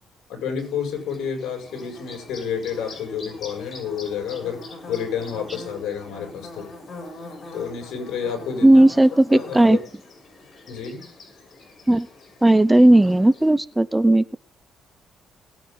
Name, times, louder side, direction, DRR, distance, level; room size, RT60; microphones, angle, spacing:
voice 1, 0.3-4.6 4.9-6.7 7.5-8.8 9.3-9.8 10.7-11.0, left 7 dB, 85° left, 3 dB, 7.2 m, -29 dB
Bird / Buzz, 0.6-13.5, left 2 dB, 45° left, 7.2 m, -42 dB
voice 2, 8.6-9.8 11.9-12.1 12.4-14.4, right 1 dB, 10° right, 18 dB, 0.7 m, -15 dB
20.0 x 9.6 x 3.9 m, 0.43 s
cardioid pair, 90°, 0 cm